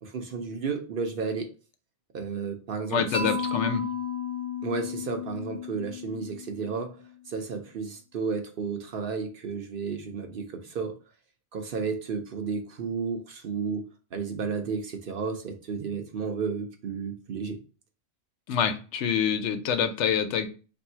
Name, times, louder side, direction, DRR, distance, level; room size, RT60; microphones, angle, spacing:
voice 1, 0.0-1.5 2.1-3.3 4.6-6.9 7.3-10.9 11.5-17.6, right 5 dB, 60° right, 5 dB, 0.7 m, -32 dB
voice 2, 2.9-3.8 18.5-20.5, left 7 dB, 75° left, 9 dB, 0.9 m, -26 dB
Mallet percussion, 3.1-7.1, left 5 dB, 30° left, 0.7 m, -34 dB
3.4 x 2.6 x 4.3 m, 0.36 s
omnidirectional pair, 1.2 m